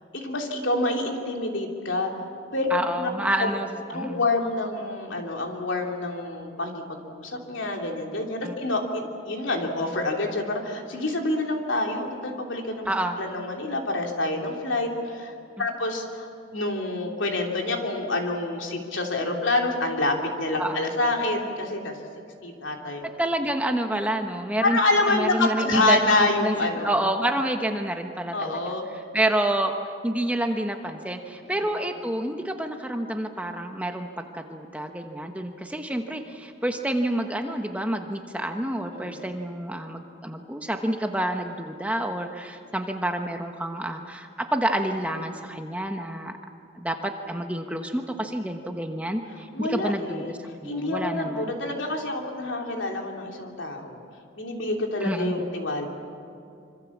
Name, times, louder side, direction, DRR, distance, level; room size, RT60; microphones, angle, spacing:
voice 1, 0.1-2.1 2.5-2.7 3.0-3.1 3.4-3.6 3.9-15.3 15.6-21.9 22.4-23.1 24.6-27.1 28.3-28.8 31.4-31.7 39.0-39.2 49.5-50.4 50.6-54.0 54.3-55.9, left 2 dB, 75° left, 1 dB, 3.3 m, -27 dB
voice 2, 2.7-3.7 3.9-4.2 8.4-8.6 12.8-13.2 15.6-15.7 20.6-20.9 23.2-24.8 25.1-26.5 26.8-28.7 29.1-29.7 30.0-46.4 46.7-51.5 55.0-55.4, right 1 dB, 5° right, 4 dB, 1.1 m, -28 dB
26.0 x 25.0 x 7.4 m, 2.5 s
head